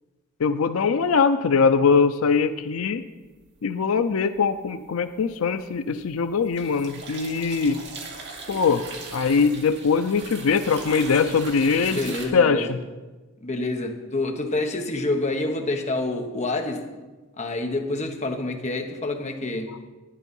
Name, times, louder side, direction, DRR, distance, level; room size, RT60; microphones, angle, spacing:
voice 1, 0.4-3.0 3.6-7.8 8.5-8.8 9.1-12.8, left 5 dB, 85° left, 0.5 m, -22 dB
sound 1, 4.1-4.7 5.1-12.3, right 3 dB, 60° right, 2.0 m, -39 dB
voice 2, 11.9-12.7 13.4-16.9 17.4-19.8, left 2 dB, 35° left, 1.2 m, -27 dB
11.0 x 10.0 x 5.4 m
head